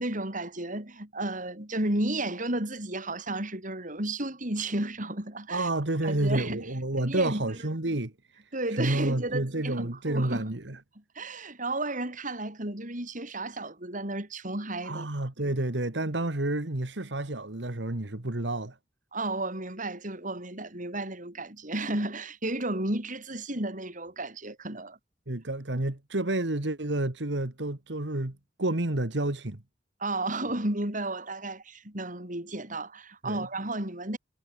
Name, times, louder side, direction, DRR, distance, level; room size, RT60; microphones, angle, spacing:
voice 1, 0.0-5.7 6.0-6.7 7.0-7.6 7.9-8.0 8.5-10.5 11.2-15.1 15.4-15.5 19.1-25.0 30.0-34.2, right 2 dB, 45° right, 7.3 m, -33 dB
voice 2, 5.5-8.4 8.7-10.8 14.8-18.8 25.3-29.6 33.2-33.4, right 2 dB, 75° right, 2.0 m, -30 dB
head